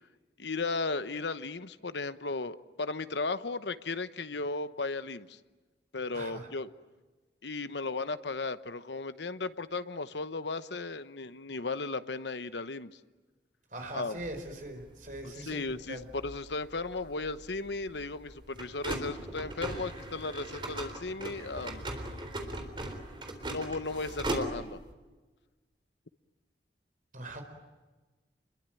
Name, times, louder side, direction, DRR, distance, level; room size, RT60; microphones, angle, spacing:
voice 1, 0.4-5.4 5.9-6.7 7.4-13.0 13.9-14.2 15.2-21.9 23.5-24.8, left 3 dB, 85° left, 12 dB, 1.1 m, -35 dB
voice 2, 6.1-6.5 13.7-15.6 15.9-16.1 27.1-27.4, right 1 dB, 45° right, 5 dB, 4.9 m, -41 dB
sound 1, 14.2-24.9, right 1 dB, 30° right, 3.8 m, -40 dB
28.5 x 22.0 x 9.2 m, 1.3 s
head